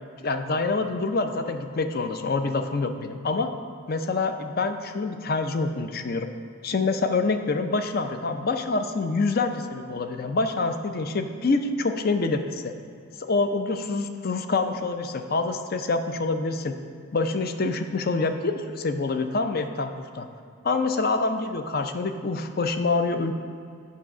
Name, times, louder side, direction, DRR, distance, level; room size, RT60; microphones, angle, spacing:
voice 1, 0.2-3.5 3.9-6.3 6.6-12.7 13.2-16.7 17.1-20.3 20.6-23.3, left 3 dB, 45° left, 8 dB, 0.5 m, -26 dB
7.5 x 5.5 x 5.9 m, 2.3 s
head